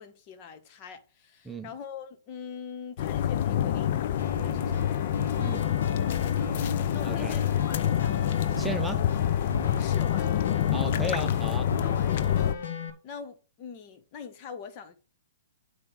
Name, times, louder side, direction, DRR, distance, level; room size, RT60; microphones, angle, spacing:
voice 1, 0.0-5.1 6.4-6.6 6.9-8.2 9.8-10.7 11.0-11.1 11.8-12.5 13.0-15.0, left 6 dB, 35° left, 1.2 m, -43 dB
sound 1, 3.0-12.5, left 10 dB, 50° left, 0.6 m, -27 dB
sound 2, 4.2-12.9, left 4 dB, 70° left, 1.7 m, -36 dB
voice 2, 7.0-7.3 8.6-9.0 10.7-11.7, right 1 dB, 5° right, 0.6 m, -34 dB
9.1 x 3.3 x 5.8 m
hypercardioid pair, 130°, 0 cm